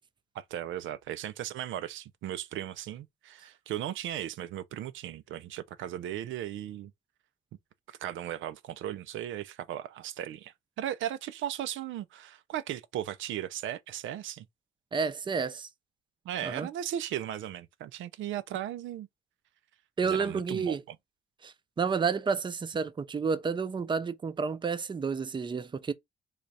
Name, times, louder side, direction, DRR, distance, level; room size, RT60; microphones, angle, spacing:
voice 1, 0.3-6.9 7.9-14.5 16.3-19.1 20.0-20.8, right 11 dB, 75° right, 0.4 m, -37 dB
voice 2, 14.9-15.7 16.4-16.7 20.0-20.8 21.4-25.9, right 5 dB, 25° right, 0.5 m, -30 dB
3.3 x 2.3 x 4.0 m
cardioid pair, 90°, 20 cm